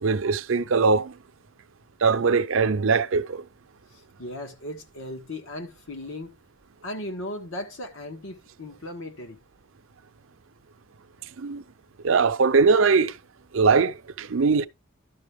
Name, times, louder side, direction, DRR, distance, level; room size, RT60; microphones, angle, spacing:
voice 1, 0.0-1.1 2.0-3.4 11.4-11.6 12.0-13.2 13.5-14.7, right 4 dB, 70° right, 0.6 m, -21 dB
voice 2, 4.2-6.3 6.8-9.4, left 1 dB, 80° left, 1.6 m, -37 dB
12.0 x 5.6 x 3.6 m
head